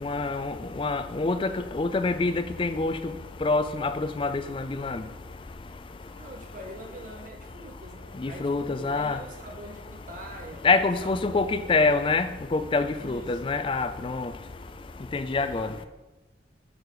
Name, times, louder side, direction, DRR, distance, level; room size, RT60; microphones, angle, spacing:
voice 1, 0.0-3.0 3.4-3.9 4.2-5.0 8.2-9.2 10.6-14.3 15.1-15.7, left 3 dB, 30° left, 11 dB, 0.3 m, -26 dB
voice 2, 6.1-12.1 13.0-13.4 15.4-15.9, right 1 dB, 45° right, 2 dB, 0.7 m, -45 dB
6.3 x 5.2 x 4.8 m, 1.1 s
head